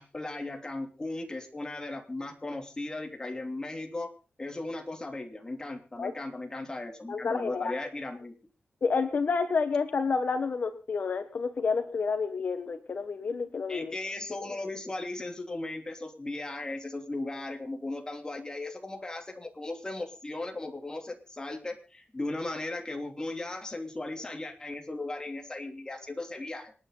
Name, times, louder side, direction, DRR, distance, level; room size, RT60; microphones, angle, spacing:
voice 1, 0.0-4.1 4.4-8.3 13.7-26.7, left 2 dB, 25° left, 3 dB, 3.3 m, -37 dB
voice 2, 7.1-7.7 8.8-13.9, left 5 dB, 60° left, 8 dB, 1.5 m, -29 dB
26.5 x 10.0 x 4.1 m, 0.35 s
wide cardioid pair, 115°, 3 cm